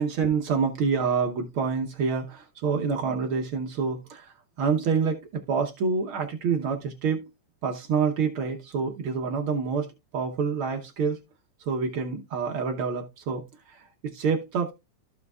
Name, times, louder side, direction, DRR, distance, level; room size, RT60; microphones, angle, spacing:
voice 1, 0.0-7.2 7.6-11.2 11.6-14.7, right 5 dB, 80° right, 1.1 m, -27 dB
14.5 x 5.2 x 2.3 m
omnidirectional pair, 3.7 m